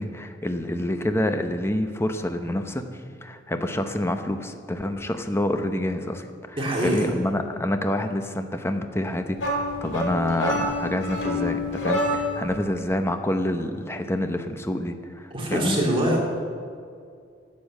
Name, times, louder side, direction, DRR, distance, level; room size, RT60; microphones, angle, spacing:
voice 1, 0.0-2.8 3.2-15.8, left 1 dB, 15° left, 7 dB, 0.8 m, -27 dB
voice 2, 6.6-7.1 12.0-12.1 15.3-16.2, right 1 dB, 30° right, -2 dB, 2.5 m, -24 dB
sound 1, 9.4-12.5, left 1 dB, 85° left, 2.9 m, -27 dB
12.0 x 8.6 x 7.3 m, 2.2 s
head